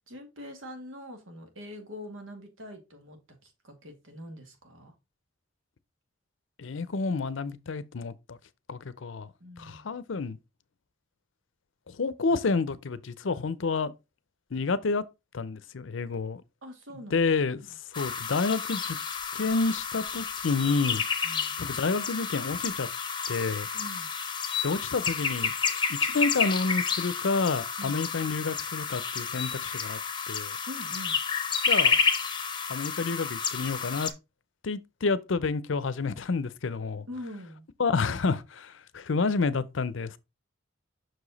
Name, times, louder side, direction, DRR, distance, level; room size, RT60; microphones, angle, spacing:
voice 1, 0.1-4.9 9.4-9.9 16.6-17.3 17.5-17.8 21.2-21.6 23.7-24.1 27.8-28.0 30.7-31.2 37.1-37.7, left 1 dB, 85° right, 2.1 m, -44 dB
voice 2, 6.6-8.4 8.7-9.3 9.6-10.4 12.0-13.9 14.5-15.0 15.3-16.4 16.9-17.6 18.0-19.0 19.3-21.0 21.6-22.9 23.3-23.7 24.6-30.0 30.3-30.6 31.7-32.0 32.7-34.1 34.6-37.0 37.8-40.2, left 4 dB, 70° left, 0.6 m, -29 dB
sound 1, 17.9-34.1, left 6 dB, 25° left, 0.7 m, -30 dB
6.2 x 4.9 x 3.9 m
head